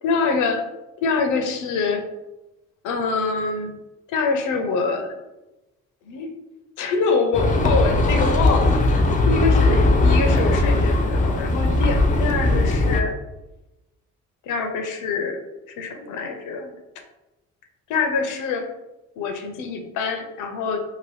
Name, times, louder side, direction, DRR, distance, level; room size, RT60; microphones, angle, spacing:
voice 1, 0.0-0.7 1.0-2.0 2.8-3.8 4.1-5.1 6.0-6.3 6.8-13.1 14.4-15.4 15.8-16.7 17.9-18.7 19.2-20.8, left 4 dB, 85° left, 4 dB, 0.6 m, -25 dB
sound 1, 7.3-13.0, left 2 dB, 25° left, 0.4 m, -19 dB
2.8 x 2.6 x 3.1 m, 0.99 s
cardioid pair, 90°, 30 cm